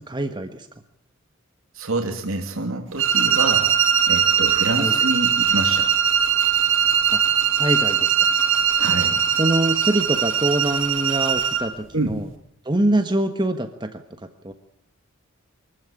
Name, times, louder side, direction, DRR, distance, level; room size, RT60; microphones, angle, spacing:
voice 1, 0.1-0.7 4.8-4.9 7.1-7.2 7.6-8.2 9.4-12.3 12.6-14.0 14.4-14.5, right 1 dB, 20° right, 7 dB, 1.3 m, -24 dB
voice 2, 1.7-3.7 4.1-5.9 8.8-9.2 11.9-12.1, right 2 dB, 90° right, 3 dB, 2.7 m, -27 dB
sound 1, 3.0-11.7, right 8 dB, 70° right, 6.6 m, -20 dB
24.5 x 15.0 x 10.0 m, 0.68 s
head